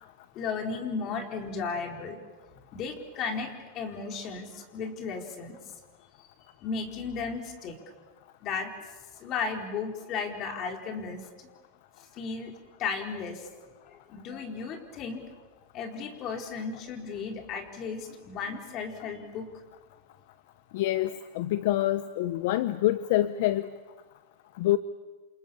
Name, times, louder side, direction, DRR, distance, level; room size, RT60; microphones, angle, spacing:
voice 1, 0.3-2.2 2.7-5.6 6.6-7.8 8.4-11.5 12.1-12.5 12.8-13.5 13.9-15.2 15.7-19.6, left 5 dB, 40° left, 4 dB, 4.5 m, -35 dB
voice 2, 20.7-23.7 24.6-24.8, left 14 dB, 65° left, 14 dB, 0.9 m, -26 dB
28.5 x 27.5 x 7.2 m, 1.3 s
supercardioid pair, 130°, 0 cm